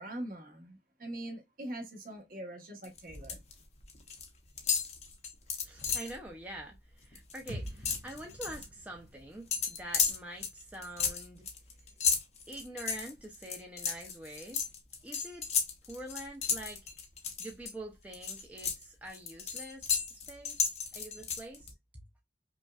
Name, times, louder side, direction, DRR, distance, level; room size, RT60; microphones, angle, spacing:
voice 1, 0.0-3.4, right 1 dB, 50° right, 1.1 m, -42 dB
sound 1, 2.8-3.5 3.8-4.3 4.6-6.2 6.6-6.7 7.0-8.7 9.5-17.7 18.1-21.7, left 6 dB, 35° left, 0.7 m, -33 dB
voice 2, 5.6-11.5 12.5-14.6 15.0-15.5 15.9-16.9 17.4-20.7 20.9-22.0, right 1 dB, 10° right, 0.6 m, -45 dB
sound 2, 7.5-11.4, equal, 80° right, 1.3 m, -48 dB
5.2 x 2.2 x 2.3 m
head